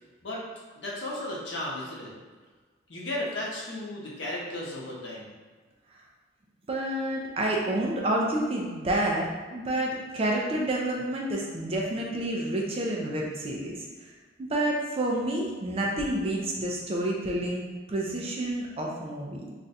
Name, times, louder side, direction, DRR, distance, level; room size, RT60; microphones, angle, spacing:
voice 1, 0.8-2.1 2.9-5.3, left 1 dB, 65° left, -5 dB, 0.8 m, -34 dB
voice 2, 6.7-13.8 14.4-19.5, right 1 dB, 30° right, -2 dB, 0.3 m, -29 dB
2.5 x 2.2 x 3.9 m, 1.4 s
head